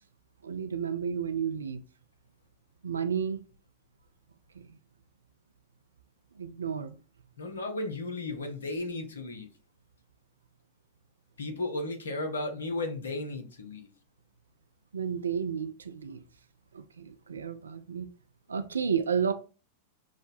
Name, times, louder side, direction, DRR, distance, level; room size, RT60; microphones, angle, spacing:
voice 1, 0.4-1.8 2.8-3.4 4.6-4.7 6.4-7.0 14.9-16.2 16.7-18.1 18.5-19.3, right 7 dB, 70° right, 0.3 m, -32 dB
voice 2, 7.4-9.5 11.4-13.9, left 2 dB, 70° left, 0.8 m, -34 dB
6.1 x 2.1 x 2.6 m
figure-of-eight pair, 90°, 0 cm